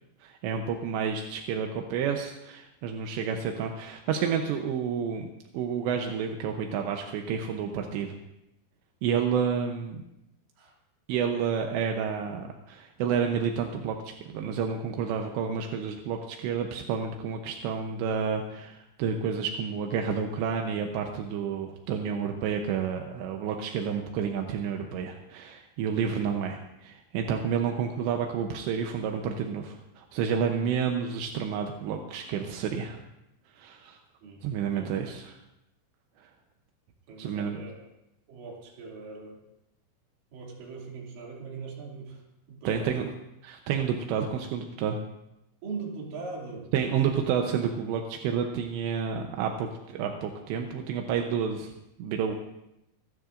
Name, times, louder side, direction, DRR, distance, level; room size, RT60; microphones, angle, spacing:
voice 1, 0.2-5.3 5.5-8.2 9.0-10.0 11.1-33.0 33.6-34.0 34.4-35.4 37.2-37.6 42.6-43.1 43.4-45.0 46.7-51.7 52.0-52.4, right 7 dB, 80° right, 3 dB, 2.6 m, -30 dB
voice 2, 34.2-35.2 37.1-37.9 38.3-39.4 40.3-43.1 45.6-46.7, right 4 dB, 50° right, -2 dB, 3.6 m, -41 dB
26.0 x 12.5 x 2.5 m, 0.88 s
omnidirectional pair, 6.0 m